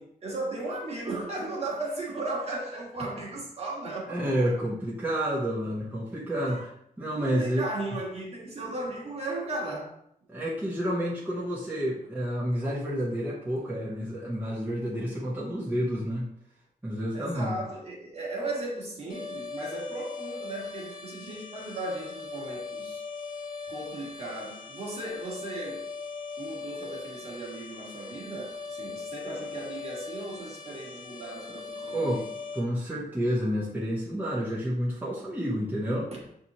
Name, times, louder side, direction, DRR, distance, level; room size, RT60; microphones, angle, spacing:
voice 1, 0.0-4.6 6.4-6.6 7.1-10.0 17.1-23.0 23.7-25.9 26.4-32.3 36.1-36.2, right 2 dB, 40° right, -3 dB, 1.4 m, -36 dB
voice 2, 4.1-6.6 7.0-7.6 10.3-16.3 16.8-17.5 31.8-32.2 32.5-36.1, equal, 10° right, -7 dB, 1.1 m, -29 dB
sound 1, 19.1-32.6, left 4 dB, 65° left, 0.8 m, -40 dB
5.9 x 2.9 x 2.9 m, 0.71 s
wide cardioid pair, 115°, 15 cm